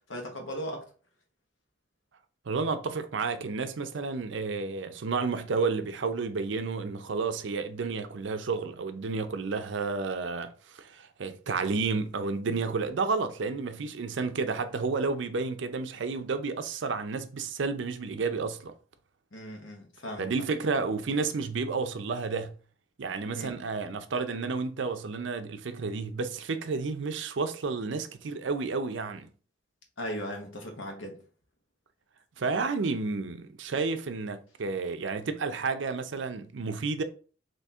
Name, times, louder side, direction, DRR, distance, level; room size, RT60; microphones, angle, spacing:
voice 1, 0.1-0.8 19.3-20.3 23.3-23.5 30.0-31.2, equal, 80° left, 1.1 m, -37 dB
voice 2, 2.5-18.7 20.2-22.5 23.0-29.3 32.4-37.0, right 4 dB, 65° right, 0.5 m, -31 dB
4.2 x 2.8 x 3.5 m
head